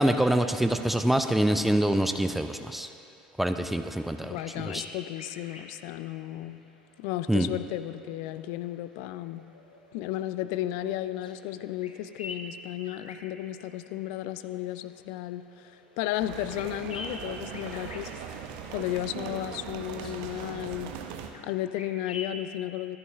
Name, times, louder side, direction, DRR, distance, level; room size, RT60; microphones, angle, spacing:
voice 1, 0.0-2.9 3.4-4.4 4.6-4.8 7.3-7.5, right 1 dB, 5° right, 7 dB, 0.5 m, -25 dB
voice 2, 4.2-6.6 7.0-9.4 9.9-18.1 18.7-20.9 21.4-23.0, left 13 dB, 55° left, 13 dB, 0.4 m, -34 dB
sound 1, 4.3-22.4, left 3 dB, 75° left, 0.9 m, -48 dB
sound 2, 16.2-21.3, right 7 dB, 60° right, 0.8 m, -39 dB
26.0 x 11.0 x 2.4 m, 2.7 s
figure-of-eight pair, 70°, 4 cm